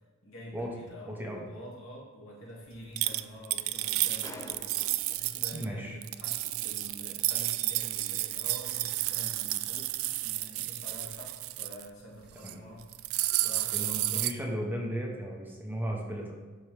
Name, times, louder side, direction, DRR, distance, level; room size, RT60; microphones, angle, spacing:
voice 1, 0.2-4.7 5.1-14.2, equal, 70° left, -4 dB, 2.3 m, -47 dB
sound 1, 0.9-1.0 2.7-2.8 3.1-5.3 6.2-6.3, left 2 dB, 15° left, 0.4 m, -49 dB
voice 2, 1.1-1.4 5.5-6.0 12.4-12.6 13.7-16.4, equal, 10° right, -1 dB, 0.9 m, -35 dB
sound 2, 3.0-5.6 6.0-11.9 12.3-12.5 12.8-14.3, right 17 dB, 75° right, 0.3 m, -31 dB
11.5 x 4.6 x 3.4 m, 1.3 s
head